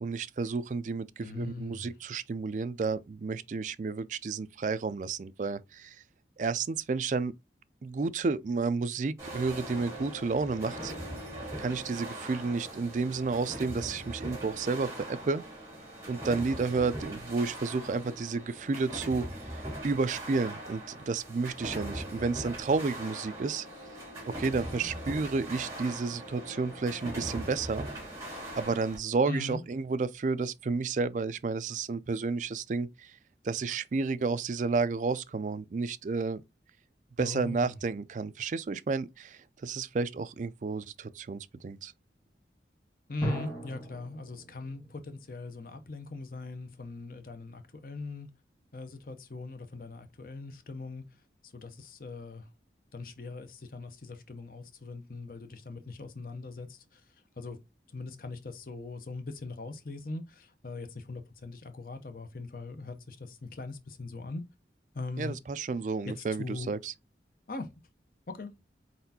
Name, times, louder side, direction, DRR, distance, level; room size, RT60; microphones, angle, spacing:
voice 1, 0.0-6.0 6.4-7.3 7.8-10.9 11.6-15.4 16.1-19.3 19.5-23.7 24.3-27.9 28.5-33.1 33.4-36.4 37.2-41.9 65.2-66.9, right 4 dB, 45° right, 0.3 m, -31 dB
voice 2, 1.2-1.9 29.2-29.6 37.2-37.8 43.1-48.3 48.7-51.0 51.4-52.5 52.9-57.6 57.9-64.4 64.9-65.4 66.1-66.7 67.5-67.7 68.3-68.5, left 3 dB, 50° left, 0.6 m, -41 dB
sound 1, 9.2-29.0, right 1 dB, 15° right, 2.3 m, -41 dB
sound 2, 43.2-46.7, right 1 dB, 15° left, 1.9 m, -40 dB
4.4 x 4.1 x 2.7 m
head